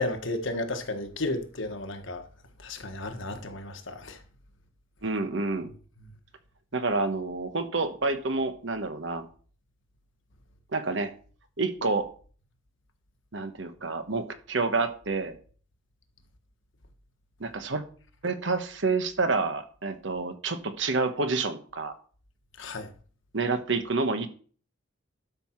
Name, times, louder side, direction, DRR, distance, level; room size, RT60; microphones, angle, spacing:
voice 1, 0.0-2.2 2.6-4.2 22.6-22.9, left 2 dB, 65° left, 1.3 m, -33 dB
voice 2, 5.0-5.7 6.7-9.3 10.7-11.1 11.6-12.1 13.3-15.4 17.4-17.8 18.2-21.9 23.3-24.3, right 3 dB, 60° right, 1.1 m, -28 dB
12.0 x 5.7 x 4.5 m
head